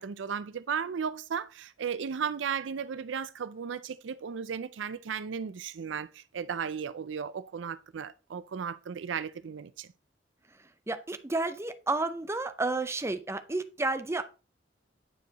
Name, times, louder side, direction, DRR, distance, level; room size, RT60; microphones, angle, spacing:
voice 1, 0.0-9.9, right 7 dB, 75° right, 0.4 m, -35 dB
voice 2, 10.9-14.2, right 2 dB, 15° right, 0.5 m, -31 dB
9.1 x 4.8 x 4.0 m
head